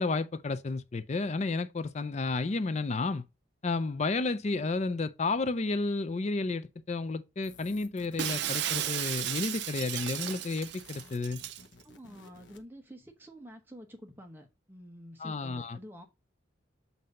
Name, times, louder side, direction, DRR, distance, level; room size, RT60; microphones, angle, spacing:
voice 1, 0.0-3.2 3.6-11.4 15.2-15.8, left 3 dB, 35° left, 0.4 m, -32 dB
sound 1, 7.4-12.7, left 4 dB, 65° left, 0.9 m, -54 dB
Shatter, 8.2-11.6, right 11 dB, 55° right, 0.4 m, -34 dB
voice 2, 11.8-16.0, equal, 10° right, 0.9 m, -49 dB
7.6 x 2.7 x 5.2 m
head